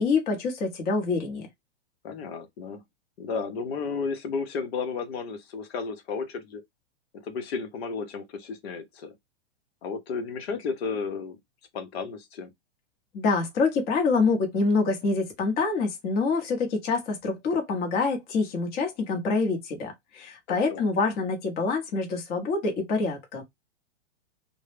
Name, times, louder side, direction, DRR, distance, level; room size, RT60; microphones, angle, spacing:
voice 1, 0.0-1.5 13.1-23.4, left 4 dB, 25° left, 0.9 m, -26 dB
voice 2, 2.0-2.8 3.2-6.6 7.2-9.1 9.8-11.4 11.7-12.5 20.5-20.8, left 5 dB, 60° left, 0.8 m, -33 dB
2.2 x 2.1 x 3.2 m
hypercardioid pair, 125°, 35 cm